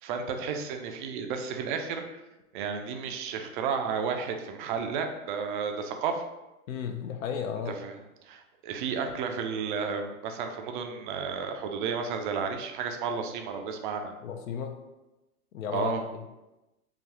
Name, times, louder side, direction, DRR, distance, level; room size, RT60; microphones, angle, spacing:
voice 1, 0.0-2.0 2.5-6.2 7.7-8.0 8.2-14.1 15.7-16.0, right 6 dB, 35° right, 5 dB, 0.4 m, -32 dB
voice 2, 6.7-7.8 14.2-14.7 15.5-16.0, left 7 dB, 65° left, 5 dB, 0.6 m, -33 dB
3.8 x 2.3 x 2.8 m, 1.0 s
hypercardioid pair, 115°, 44 cm